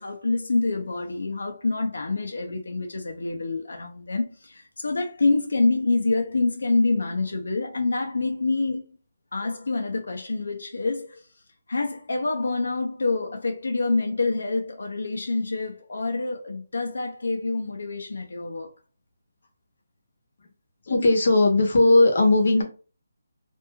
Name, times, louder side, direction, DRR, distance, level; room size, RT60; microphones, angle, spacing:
voice 1, 0.0-9.0 9.3-11.2 11.7-18.7, left 3 dB, 85° left, 0.6 m, -26 dB
voice 2, 20.9-22.6, left 2 dB, 50° left, 0.9 m, -18 dB
3.0 x 2.6 x 2.3 m
hypercardioid pair, 175°, 0 cm